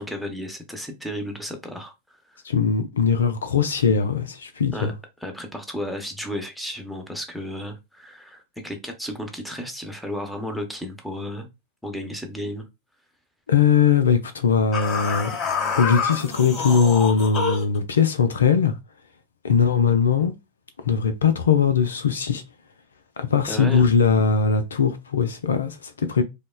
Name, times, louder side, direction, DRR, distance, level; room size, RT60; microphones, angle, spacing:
voice 1, 0.0-1.9 2.3-2.4 4.7-4.9 5.2-11.5 11.8-12.7 23.5-23.9, equal, ahead, 0.9 m, -33 dB
voice 2, 2.4-4.9 13.5-15.4 15.8-18.7 19.4-20.3 20.9-22.4 23.2-26.2, left 6 dB, 70° left, 0.4 m, -20 dB
sound 1, 14.7-17.8, left 5 dB, 30° left, 1.5 m, -27 dB
5.1 x 2.2 x 2.2 m
figure-of-eight pair, 90°, 0 cm